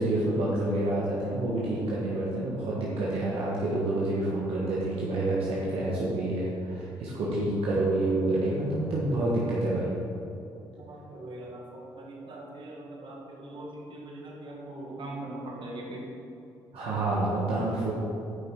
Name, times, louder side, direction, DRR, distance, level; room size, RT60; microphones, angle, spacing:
voice 1, 0.0-10.0 16.7-17.9, right 2 dB, 75° right, -6 dB, 1.6 m, -28 dB
voice 2, 10.8-16.1, right 1 dB, 55° right, -2 dB, 2.1 m, -41 dB
9.8 x 5.6 x 4.8 m, 2.7 s
supercardioid pair, 65°, 10 cm